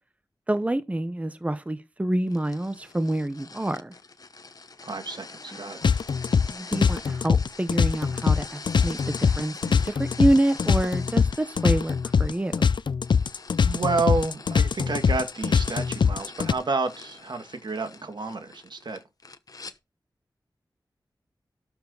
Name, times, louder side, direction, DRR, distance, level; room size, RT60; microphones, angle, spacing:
voice 1, 0.5-3.9 6.5-12.7, right 1 dB, 15° right, 0.8 m, -27 dB
sound 1, 2.3-19.8, left 3 dB, 50° left, 1.0 m, -44 dB
voice 2, 4.8-5.8 13.6-19.0, right 3 dB, 65° right, 1.9 m, -30 dB
sound 2, 5.8-16.5, left 6 dB, 75° left, 0.4 m, -22 dB
12.5 x 7.2 x 3.9 m
wide cardioid pair, 75°, 8 cm